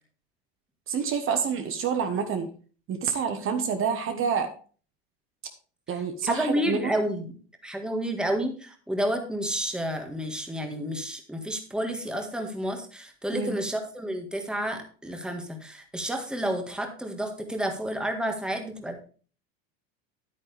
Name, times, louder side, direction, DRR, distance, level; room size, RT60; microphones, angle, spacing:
voice 1, 0.9-2.5 2.9-4.5 5.9-6.9 13.3-13.6, right 6 dB, 40° right, 7 dB, 1.3 m, -28 dB
voice 2, 6.3-7.3 7.6-19.1, equal, 5° right, 4 dB, 1.7 m, -30 dB
9.6 x 9.3 x 3.4 m, 0.39 s
supercardioid pair, 115°, 31 cm